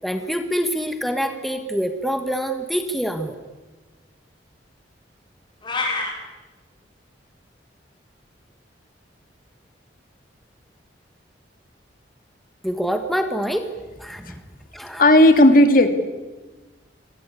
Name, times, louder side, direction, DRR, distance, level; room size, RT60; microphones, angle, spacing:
voice 1, 0.0-3.3 12.6-13.7 14.0-14.4 14.7-15.0, equal, ahead, 6 dB, 1.6 m, -25 dB
sound 1, 5.6-6.1, left 3 dB, 25° left, 5.7 m, -25 dB
voice 2, 15.0-15.9, left 1 dB, 50° left, 8 dB, 2.6 m, -12 dB
29.0 x 22.0 x 8.5 m, 1.2 s
head